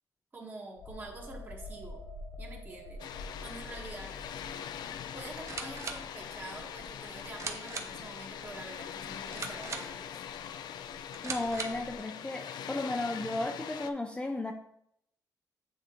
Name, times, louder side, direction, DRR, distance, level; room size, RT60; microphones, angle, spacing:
voice 1, 0.3-2.0 2.4-4.1 5.1-10.2, right 2 dB, 30° right, 0 dB, 1.5 m, -46 dB
sound 1, 0.8-8.2 8.6-8.8, left 1 dB, 40° left, 1.0 m, -47 dB
Water, 3.0-13.9, left 9 dB, 85° left, 0.3 m, -42 dB
sound 2, 5.3-12.0, right 4 dB, 45° right, 0.7 m, -43 dB
voice 2, 11.2-14.5, left 2 dB, 15° left, 3 dB, 0.5 m, -34 dB
9.0 x 3.6 x 3.0 m, 0.73 s
cardioid pair, 120°, 7 cm